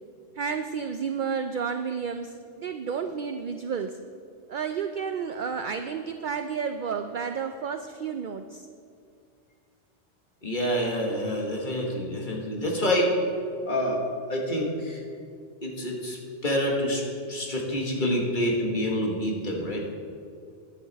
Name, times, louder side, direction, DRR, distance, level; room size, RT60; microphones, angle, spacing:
voice 1, 0.4-4.0 4.5-8.7, right 6 dB, 60° right, 7 dB, 0.5 m, -31 dB
voice 2, 10.4-13.1 13.7-14.0 14.3-15.0 15.6-17.0 17.3-19.8, equal, 45° left, -1 dB, 1.7 m, -27 dB
10.5 x 10.0 x 4.1 m, 2.3 s
omnidirectional pair, 1.2 m